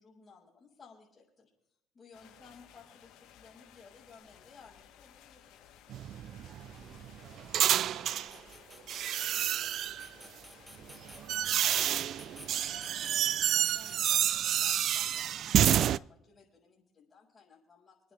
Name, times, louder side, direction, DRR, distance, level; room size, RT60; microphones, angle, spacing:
voice 1, 0.0-1.5 1.9-5.7 13.3-18.1, left 4 dB, 25° left, -7 dB, 5.1 m, -58 dB
sound 1, 2.1-13.1, left 10 dB, 75° left, 2.9 m, -58 dB
voice 2, 2.2-2.5 6.6-10.3 10.7-12.8, right 3 dB, 85° right, -1 dB, 4.7 m, -62 dB
sound 2, 5.9-8.3 8.9-10.1 10.8-16.0, right 11 dB, 55° right, 0.4 m, -29 dB
sound 3, 6.6-15.8, equal, ahead, 1.6 m, -54 dB
27.0 x 9.9 x 3.4 m, 0.81 s
cardioid pair, 105°, 0 cm